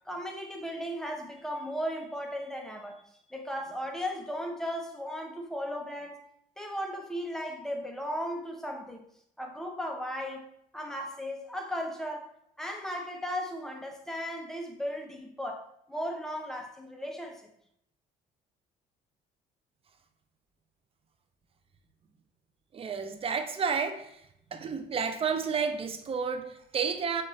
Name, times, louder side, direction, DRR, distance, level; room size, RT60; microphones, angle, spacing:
voice 1, 0.1-3.0 3.3-6.2 6.6-9.0 9.4-10.5 10.7-12.3 12.6-17.4, equal, 5° left, 0.7 m, -36 dB
voice 2, 22.7-24.0 24.5-27.2, right 6 dB, 35° right, 0.5 m, -31 dB
6.5 x 2.5 x 3.1 m
cardioid pair, 110°, 17 cm